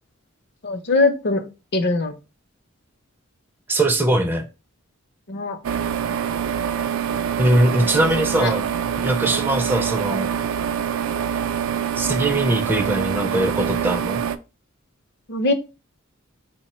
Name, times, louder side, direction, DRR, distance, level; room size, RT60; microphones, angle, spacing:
voice 1, 0.6-1.4 1.7-2.1 5.3-5.6 7.8-7.9 8.2-8.5 15.3-15.5, left 3 dB, 55° left, 0.6 m, -21 dB
voice 2, 3.7-4.4 7.4-8.7 8.9-10.3 12.0-14.2, right 1 dB, 10° right, 0.4 m, -21 dB
sound 1, 5.6-14.4, right 8 dB, 75° right, 0.4 m, -25 dB
4.3 x 2.1 x 4.1 m
head